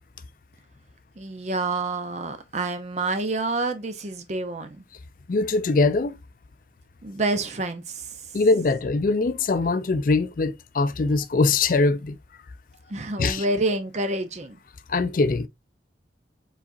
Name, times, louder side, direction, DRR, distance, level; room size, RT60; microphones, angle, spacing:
voice 1, 1.2-4.8 7.0-8.1 12.9-14.6, right 2 dB, 40° right, 0.6 m, -28 dB
voice 2, 5.3-6.2 8.3-12.2 13.2-13.4 14.9-15.5, left 3 dB, 50° left, 0.4 m, -22 dB
4.9 x 4.0 x 2.5 m
head